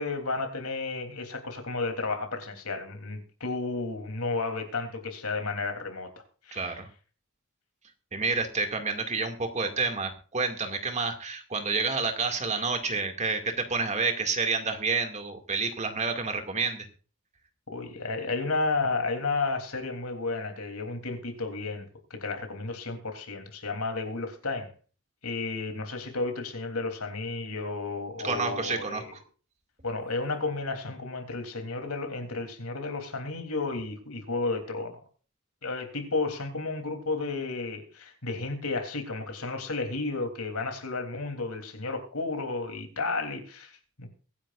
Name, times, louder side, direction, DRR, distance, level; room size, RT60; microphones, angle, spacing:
voice 1, 0.0-6.1 6.4-6.8 17.7-24.7 25.2-29.1 29.8-35.0 35.6-44.1, left 3 dB, 90° left, 5 dB, 3.3 m, -32 dB
voice 2, 6.5-6.9 8.1-16.9 28.2-29.0, right 4 dB, 35° right, 5 dB, 2.3 m, -29 dB
23.0 x 10.5 x 2.5 m, 0.39 s
head